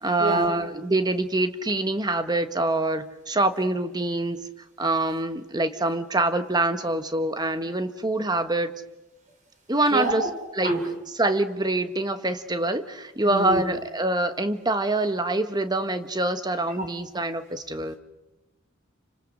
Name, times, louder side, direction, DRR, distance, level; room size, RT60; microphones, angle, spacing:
voice 1, 0.0-4.4 4.8-8.7 9.7-10.2 10.5-10.7 11.2-18.0, right 2 dB, 20° right, 9 dB, 1.3 m, -25 dB
voice 2, 9.9-10.3 10.6-10.8 13.2-13.6 16.8-16.9, right 2 dB, 40° right, 3 dB, 5.7 m, -26 dB
29.5 x 26.0 x 6.5 m, 1.0 s
head